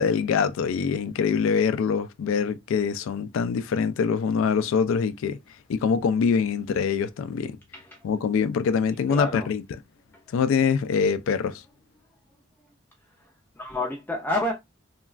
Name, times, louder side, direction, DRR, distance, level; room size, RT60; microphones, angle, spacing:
voice 1, 0.0-5.4 5.7-7.6 8.0-9.6 10.3-11.6, left 6 dB, 75° left, 0.3 m, -24 dB
voice 2, 9.1-9.5 13.6-14.5, left 1 dB, 10° left, 0.4 m, -29 dB
3.1 x 2.2 x 2.4 m
head